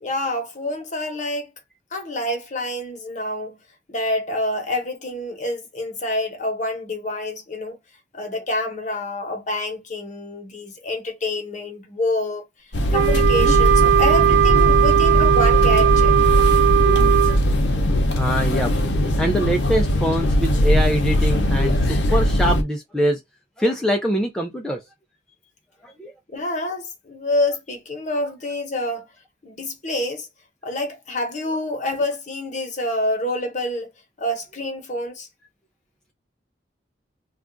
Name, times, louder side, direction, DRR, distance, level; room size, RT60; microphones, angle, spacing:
voice 1, 0.0-1.5 1.9-3.6 3.9-7.8 8.1-12.4 12.9-16.1 26.3-29.1 29.4-30.3 30.6-33.9 34.2-35.3, left 1 dB, 40° left, 0.9 m, -27 dB
sound 1, 12.7-22.6, equal, 65° left, 0.6 m, -19 dB
Wind instrument woodwind instrument, 12.9-17.4, right 11 dB, 85° right, 0.3 m, -18 dB
voice 2, 18.1-23.2 23.6-24.8 25.8-26.1, right 1 dB, 5° left, 0.4 m, -24 dB
2.4 x 2.3 x 3.7 m
head